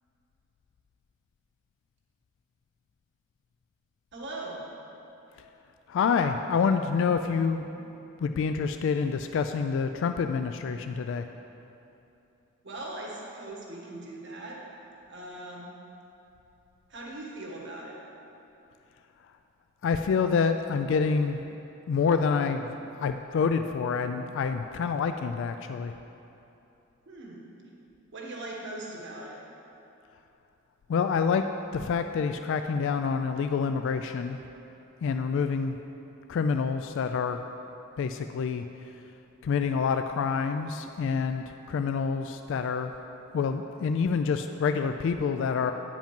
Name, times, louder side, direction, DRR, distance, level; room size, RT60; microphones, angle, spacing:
voice 1, 4.1-4.7 12.6-14.6 15.1-15.8 16.9-18.0 27.1-27.5 28.1-29.4, right 2 dB, 60° right, -3 dB, 1.4 m, -40 dB
voice 2, 5.9-7.9 8.2-11.3 19.8-21.4 21.9-25.9 30.9-34.4 35.0-35.8 36.3-37.4 38.0-38.6 39.4-42.9 43.3-45.7, left 5 dB, 65° left, 7 dB, 0.3 m, -27 dB
9.1 x 5.0 x 5.3 m, 2.9 s
head